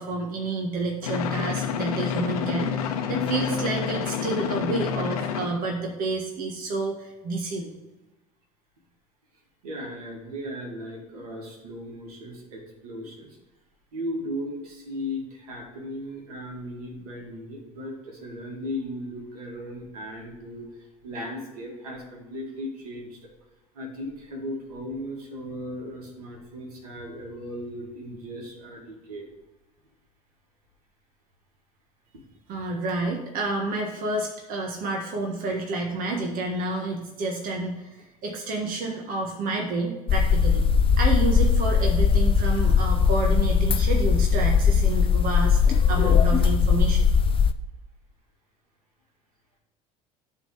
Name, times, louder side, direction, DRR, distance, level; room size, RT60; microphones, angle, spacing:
voice 1, 0.0-7.7 32.5-40.6 41.0-45.6 45.9-47.1, right 2 dB, 50° right, 1 dB, 1.5 m, -29 dB
sound 1, 1.0-5.6, left 8 dB, 75° left, 1.0 m, -28 dB
voice 2, 9.6-13.3 13.9-20.7 21.0-23.2 23.7-29.3, equal, 80° right, 0 dB, 2.3 m, -36 dB
sound 2, 40.1-47.5, left 6 dB, 30° left, 0.5 m, -20 dB
11.5 x 3.9 x 5.7 m, 1.0 s
hypercardioid pair, 75°, 19 cm